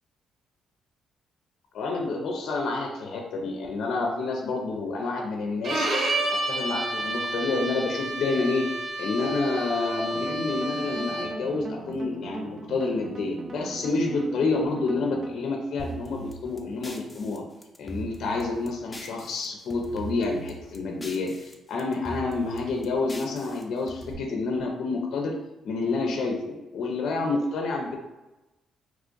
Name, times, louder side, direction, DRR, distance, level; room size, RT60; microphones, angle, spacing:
voice 1, 1.7-5.9 6.5-8.7 9.0-17.4 17.8-25.3 25.6-28.0, left 3 dB, 70° left, 1 dB, 0.5 m, -28 dB
Bowed string instrument, 5.6-11.5, right 1 dB, 60° right, 0.8 m, -30 dB
sound 1, 10.1-15.7, right 4 dB, 35° right, 0.4 m, -40 dB
sound 2, 15.8-19.5 19.7-21.5 21.8-24.1, right 1 dB, 15° left, 0.5 m, -41 dB
3.0 x 2.4 x 3.7 m, 1.0 s
cardioid pair, 90°, 0 cm